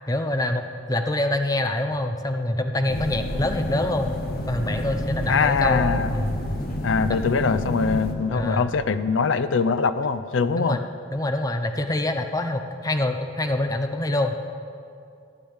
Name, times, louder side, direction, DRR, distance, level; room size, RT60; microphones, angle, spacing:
voice 1, 0.1-4.1 4.5-6.4 7.1-7.2 8.3-8.7 10.6-10.8 11.1-14.3, left 1 dB, 20° left, 6 dB, 0.6 m, -25 dB
sound 1, 2.9-8.1, left 1 dB, 50° left, 1.3 m, -29 dB
voice 2, 5.3-6.1 6.8-10.8, left 5 dB, 90° left, 12 dB, 0.5 m, -22 dB
13.5 x 8.7 x 7.2 m, 2.5 s
head